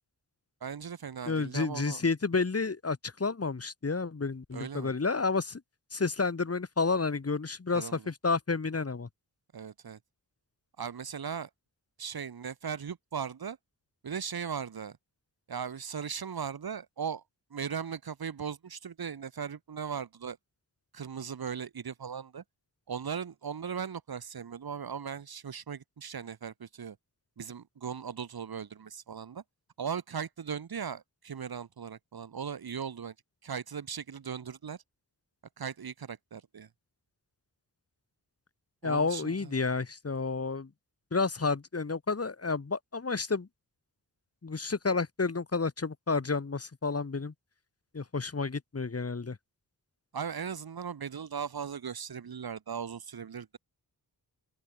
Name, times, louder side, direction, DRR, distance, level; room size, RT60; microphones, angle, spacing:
voice 1, 0.6-2.0 4.5-4.9 7.7-8.1 9.5-10.0 10.8-11.5 12.0-13.6 14.0-15.0 15.5-17.2 17.5-20.4 20.9-22.4 22.9-27.0 27.4-29.4 29.8-33.1 33.4-34.8 35.6-36.7 38.8-39.5 50.1-53.6, right 7 dB, 65° right, 2.3 m, -38 dB
voice 2, 1.3-5.6 5.9-9.1 38.8-40.7 41.1-43.5 44.4-47.3 47.9-49.4, left 4 dB, 35° left, 3.4 m, -30 dB
open air
wide cardioid pair, 105°, 39 cm